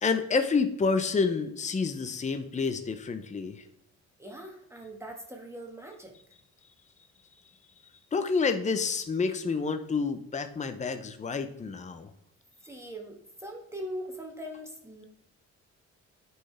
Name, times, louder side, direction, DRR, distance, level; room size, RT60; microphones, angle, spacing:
voice 1, 0.0-3.6 8.1-12.1, left 4 dB, 25° left, 8 dB, 0.8 m, -29 dB
voice 2, 4.2-6.1 12.6-15.0, equal, 10° right, 1 dB, 1.7 m, -41 dB
9.5 x 5.6 x 3.3 m, 0.77 s
cardioid pair, 90°, 30 cm